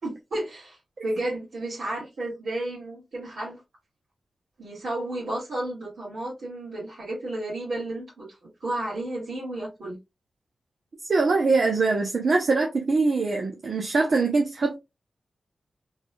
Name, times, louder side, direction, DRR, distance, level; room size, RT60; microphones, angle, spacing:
voice 1, 0.0-0.8 1.0-3.6 4.6-8.3 8.6-10.0, right 1 dB, 75° right, 2.4 m, -32 dB
voice 2, 11.0-14.8, right 3 dB, 60° right, 0.8 m, -23 dB
4.0 x 3.3 x 2.3 m
wide cardioid pair, 90°, 0 cm